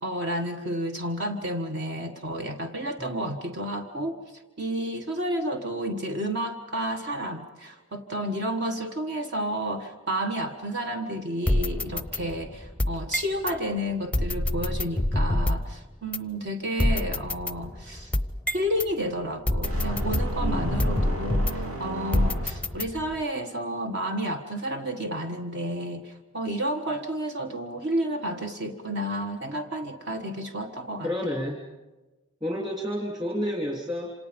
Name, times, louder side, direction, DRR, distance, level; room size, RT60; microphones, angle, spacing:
voice 1, 0.0-4.2 4.6-18.1 18.5-31.1, equal, 50° right, 4 dB, 1.5 m, -31 dB
sound 1, 11.5-13.6 14.1-15.7 16.1-16.2 16.8-18.9 19.5-21.7 22.1-23.2, left 1 dB, 5° left, 0.7 m, -27 dB
sound 2, 19.6-22.9, right 1 dB, 70° right, 4.5 m, -35 dB
voice 2, 20.4-20.9 31.0-31.6 32.4-34.1, equal, 20° right, -2 dB, 3.1 m, -30 dB
28.0 x 26.5 x 5.3 m, 1.1 s
head